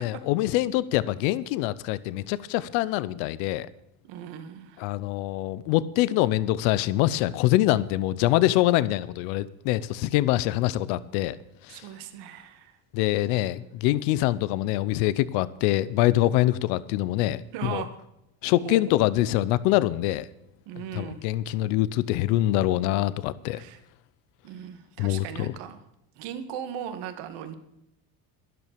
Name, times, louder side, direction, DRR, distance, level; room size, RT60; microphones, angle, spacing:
voice 1, 0.0-3.7 4.8-11.4 11.7-11.8 12.9-17.8 18.4-20.3 20.9-23.6 25.0-25.5, left 15 dB, 85° left, 18 dB, 0.8 m, -24 dB
voice 2, 4.0-4.8 11.7-12.7 13.3-13.4 17.5-17.9 18.6-18.8 20.7-21.2 23.5-23.8 24.4-25.8 26.2-27.5, right 9 dB, 80° right, 9 dB, 2.2 m, -38 dB
12.5 x 11.0 x 6.9 m, 0.82 s
supercardioid pair, 95°, 42 cm